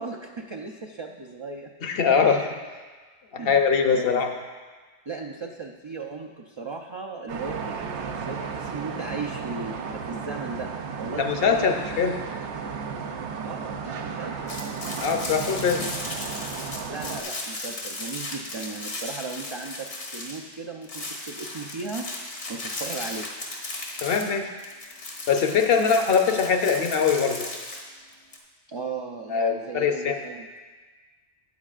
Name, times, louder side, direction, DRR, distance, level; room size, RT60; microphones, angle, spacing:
voice 1, 0.0-1.7 3.4-3.7 3.9-4.3 5.1-10.7 11.0-11.9 13.4-14.8 16.8-22.1 22.5-23.3 25.7-25.9 28.7-30.5, right 4 dB, 45° right, 1 dB, 0.4 m, -37 dB
voice 2, 1.8-2.5 3.3-4.3 11.2-12.2 15.0-15.9 24.0-24.5 25.3-27.5 29.3-30.2, left 6 dB, 60° left, 5 dB, 0.9 m, -22 dB
sound 1, 7.3-17.2, right 5 dB, 80° right, 1.0 m, -34 dB
sound 2, 14.5-20.5 20.8-28.4, left 2 dB, 85° left, 1.7 m, -36 dB
13.0 x 9.0 x 2.4 m, 1.4 s
omnidirectional pair, 1.1 m